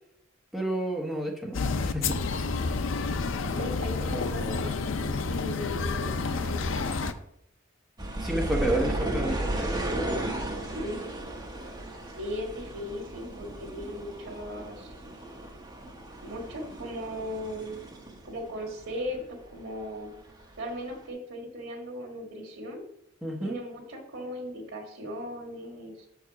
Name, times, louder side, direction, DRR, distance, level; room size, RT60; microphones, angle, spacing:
voice 1, 0.5-2.3 8.1-9.8 23.2-23.5, right 1 dB, ahead, 0 dB, 1.0 m, -30 dB
sound 1, 1.5-7.1, left 4 dB, 70° left, 0.5 m, -29 dB
voice 2, 3.5-6.8 10.7-11.0 12.2-14.9 16.2-17.8 18.2-20.1 20.6-22.8 23.4-26.1, equal, 85° right, 2 dB, 1.6 m, -38 dB
sound 2, 8.0-19.2 19.4-20.5 21.0-21.1, right 1 dB, 20° right, 1.1 m, -35 dB
6.2 x 4.8 x 5.7 m, 0.75 s
head